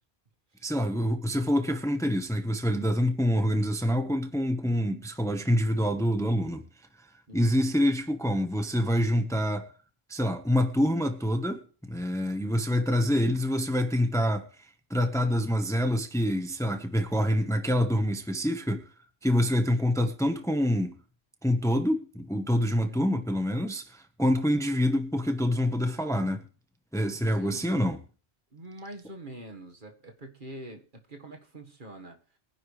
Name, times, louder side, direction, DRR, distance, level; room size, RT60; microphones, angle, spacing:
voice 1, 0.6-6.6 7.3-9.7 10.1-14.5 14.9-18.8 19.2-21.0 21.4-26.4 26.9-28.0, equal, 5° left, 1.1 m, -26 dB
voice 2, 22.9-23.2 27.4-27.6 28.5-32.2, right 1 dB, 50° right, 1.9 m, -44 dB
23.0 x 10.5 x 3.3 m
omnidirectional pair, 1.1 m